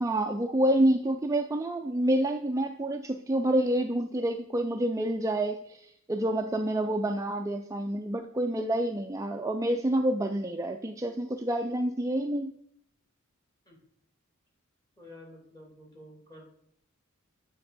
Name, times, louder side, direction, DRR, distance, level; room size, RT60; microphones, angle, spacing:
voice 1, 0.0-12.5, right 1 dB, 15° right, 4 dB, 0.4 m, -28 dB
voice 2, 15.0-16.4, left 1 dB, 15° left, -2 dB, 2.7 m, -50 dB
8.9 x 4.6 x 4.1 m, 0.73 s
head